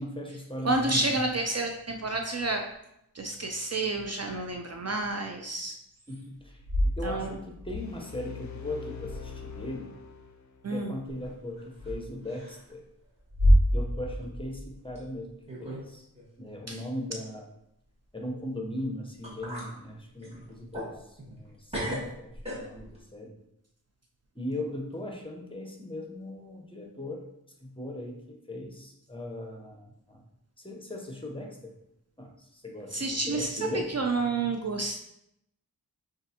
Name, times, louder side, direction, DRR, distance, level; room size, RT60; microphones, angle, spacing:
voice 1, 0.0-1.3 6.1-6.6 6.8-9.9 10.7-12.8 13.7-15.3 15.6-16.1 16.4-17.5 18.1-23.4 24.3-27.2 27.6-30.2 30.6-31.7 32.2-33.9, left 1 dB, 15° left, 1 dB, 0.7 m, -38 dB
voice 2, 0.6-2.6 3.1-5.7 7.0-7.4 10.6-10.9 16.7-16.8 32.9-35.0, right 2 dB, 45° right, 3 dB, 0.4 m, -30 dB
sound 1, 6.4-7.8 8.9-9.6 11.8-11.9 13.2-15.2, equal, 75° right, 0.9 m, -27 dB
sound 2, 7.7-10.8, left 6 dB, 50° left, 0.4 m, -42 dB
sound 3, 11.1-12.0 12.2-12.7 13.2-13.3 14.1-14.2 15.0-15.1 15.5-15.9 16.1-16.3 18.8-18.9 19.2-19.7 20.2-21.5 21.7-23.0, equal, 15° right, 1.4 m, -39 dB
5.1 x 2.5 x 2.7 m, 0.79 s
wide cardioid pair, 40°, 38 cm